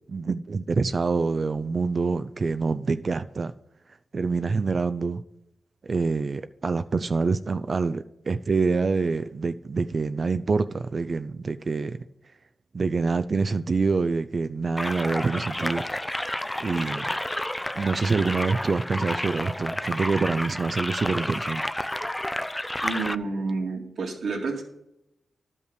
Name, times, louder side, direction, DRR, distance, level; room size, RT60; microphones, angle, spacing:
voice 1, 0.1-3.5 4.1-5.2 5.8-12.1 12.7-15.8 16.6-17.1 17.7-21.6, right 4 dB, 50° right, 0.4 m, -26 dB
sound 1, 14.8-23.2, left 1 dB, 10° left, 0.5 m, -30 dB
voice 2, 22.8-24.6, right 4 dB, 75° right, 2.3 m, -29 dB
11.0 x 5.4 x 6.8 m
cardioid pair, 60°, 0 cm